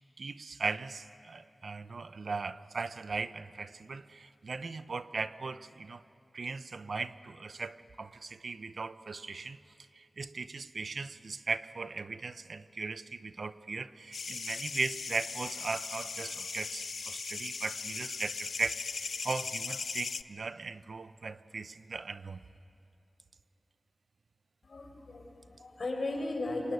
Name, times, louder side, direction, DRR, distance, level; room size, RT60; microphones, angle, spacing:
voice 1, 0.2-6.0 6.3-9.6 9.9-18.8 19.2-22.4, right 4 dB, 70° right, 12 dB, 0.8 m, -38 dB
sound 1, 14.1-20.2, left 4 dB, 85° left, 0.5 m, -38 dB
voice 2, 24.6-26.7, left 2 dB, 65° left, 3 dB, 5.0 m, -36 dB
26.0 x 23.5 x 9.4 m, 2.6 s
wide cardioid pair, 75°, 0 cm